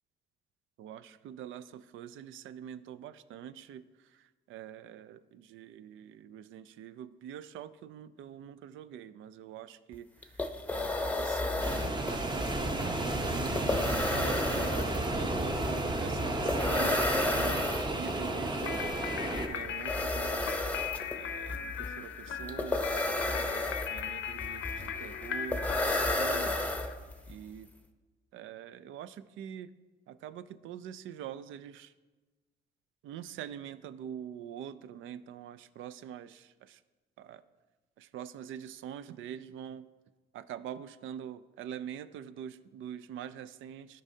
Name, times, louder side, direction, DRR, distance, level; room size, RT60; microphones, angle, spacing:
voice 1, 0.8-1.6 1.9-3.8 4.5-5.2 5.5-10.0 10.7-13.8 14.2-16.2 16.6-17.0 17.3-18.8 19.5-20.5 21.2-21.7 22.0-22.1 22.4-23.1 23.4-24.6 25.0-26.5 27.3-27.7 28.3-29.7 30.2-31.9 33.0-36.3 37.3-37.4 38.1-39.8 40.3-43.9, right 9 dB, 80° right, 14 dB, 0.4 m, -44 dB
sound 1, 9.9-10.0 10.2-27.3, left 2 dB, 5° left, 0.7 m, -33 dB
sound 2, 11.6-19.5, right 2 dB, 20° right, 0.8 m, -32 dB
sound 3, 18.6-26.9, left 8 dB, 80° left, 0.6 m, -38 dB
13.0 x 5.3 x 2.7 m, 1.2 s
cardioid pair, 90°, 20 cm